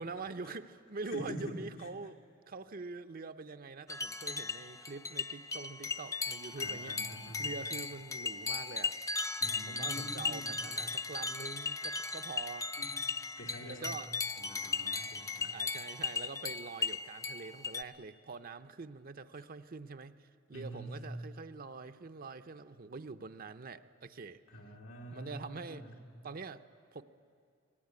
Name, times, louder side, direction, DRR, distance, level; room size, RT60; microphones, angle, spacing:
voice 1, 0.0-7.0 7.4-8.9 9.7-12.7 13.6-14.3 15.5-24.4 25.1-25.9 26.2-26.6 26.9-27.0, right 4 dB, 45° right, 10 dB, 0.7 m, -45 dB
voice 2, 1.1-1.4 6.6-7.5 9.4-10.7 12.8-12.9 13.4-13.9 14.4-15.6 20.5-20.9 24.5-25.9, equal, 90° left, -1 dB, 3.2 m, -46 dB
sound 1, 3.9-17.8, left 4 dB, 15° left, 0.5 m, -37 dB
24.0 x 18.5 x 9.6 m, 2.4 s
head